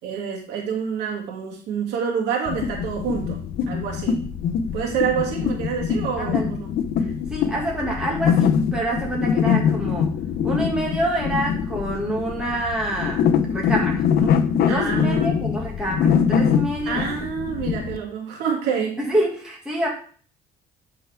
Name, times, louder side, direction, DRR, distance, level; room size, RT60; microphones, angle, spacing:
voice 1, 0.0-4.3 4.7-6.7 14.7-15.4 16.9-19.0, right 7 dB, 90° right, -1 dB, 2.7 m, -27 dB
sound 1, 2.4-18.0, left 7 dB, 65° left, 0.8 m, -23 dB
voice 2, 6.2-6.5 7.0-10.1 10.4-14.4 14.6-17.3 19.0-19.9, right 1 dB, 5° right, -4 dB, 2.2 m, -27 dB
11.0 x 4.8 x 3.6 m, 0.43 s
cardioid pair, 110°, 17 cm